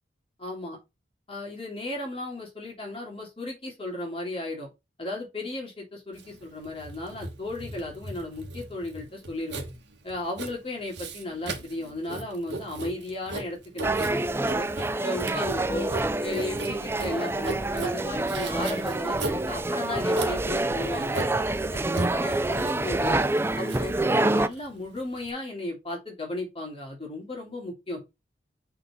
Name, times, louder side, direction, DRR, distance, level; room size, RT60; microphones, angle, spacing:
voice 1, 0.4-0.8 1.3-4.7 5.0-9.6 10.0-14.7 15.0-15.9 16.2-21.3 21.7-23.2 23.6-28.1, left 2 dB, 30° left, 3.0 m, -35 dB
Writing, 6.1-25.3, right 3 dB, 75° right, 1.6 m, -37 dB
sound 1, 13.8-24.5, right 2 dB, 15° right, 0.4 m, -27 dB
6.5 x 3.8 x 4.4 m
head